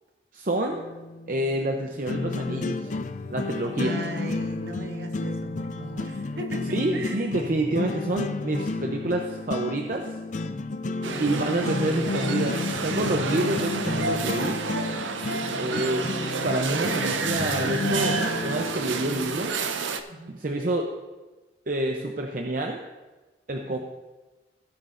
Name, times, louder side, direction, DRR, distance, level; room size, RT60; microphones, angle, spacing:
voice 1, 0.3-0.9 1.3-3.0 3.3-4.0 6.7-10.1 11.2-14.6 15.5-19.5 20.4-20.9 21.7-22.8 23.5-23.8, right 1 dB, 45° right, 2 dB, 0.6 m, -28 dB
sound 1, 0.7-19.5, left 3 dB, 40° left, 0.4 m, -32 dB
voice 2, 3.7-7.5 11.0-11.3 15.3-16.2 20.1-20.4 23.6-23.8, right 1 dB, 65° right, 4 dB, 1.2 m, -38 dB
sound 2, 11.0-20.0, right 4 dB, 90° right, 0.6 m, -30 dB
17.0 x 8.1 x 2.5 m, 1.2 s
head